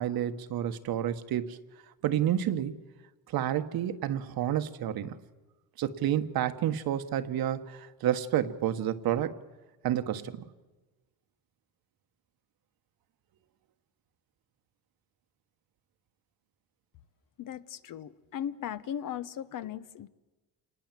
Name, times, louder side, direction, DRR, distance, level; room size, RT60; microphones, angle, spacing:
voice 1, 0.0-1.6 2.0-2.8 3.3-5.2 5.8-9.4 9.8-10.4, right 11 dB, 70° right, 9 dB, 1.5 m, -30 dB
voice 2, 17.4-20.1, left 10 dB, 60° left, 14 dB, 1.1 m, -37 dB
28.0 x 20.0 x 7.6 m, 1.1 s
cardioid pair, 115°, 37 cm